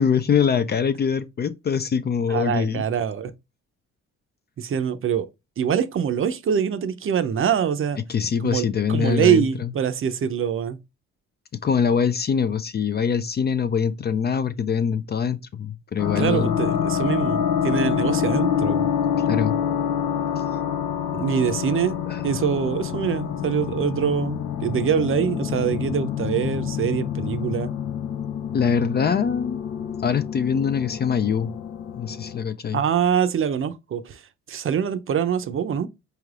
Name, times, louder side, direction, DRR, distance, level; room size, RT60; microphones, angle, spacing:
voice 1, 0.0-2.8 8.1-9.7 11.6-16.8 19.3-19.6 20.4-20.5 22.1-22.2 28.5-29.6 30.0-31.5 32.0-32.8, left 7 dB, 35° left, 0.4 m, -23 dB
voice 2, 2.3-3.3 4.6-5.3 5.6-8.0 8.4-10.8 16.2-18.9 21.1-22.0 22.2-27.7 32.7-34.2 34.5-35.9, right 8 dB, 45° right, 0.6 m, -24 dB
sound 1, 16.0-32.4, left 8 dB, 90° left, 0.7 m, -27 dB
4.5 x 3.3 x 2.4 m
cardioid pair, 90°, 30 cm